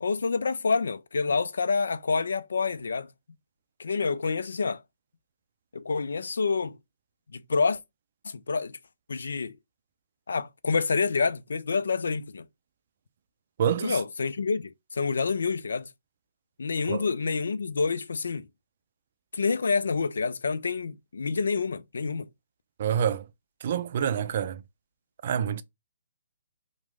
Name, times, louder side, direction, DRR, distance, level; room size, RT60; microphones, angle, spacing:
voice 1, 0.0-3.1 3.8-4.8 5.7-6.8 7.3-7.8 8.2-8.8 9.1-9.5 10.3-12.5 13.8-15.9 16.6-18.5 19.3-22.3, left 4 dB, 75° left, 0.3 m, -28 dB
voice 2, 13.6-14.0 16.9-17.0 22.8-23.2 23.6-24.6 25.2-25.6, right 8 dB, 50° right, 0.3 m, -27 dB
3.0 x 2.0 x 3.4 m
hypercardioid pair, 140°, 0 cm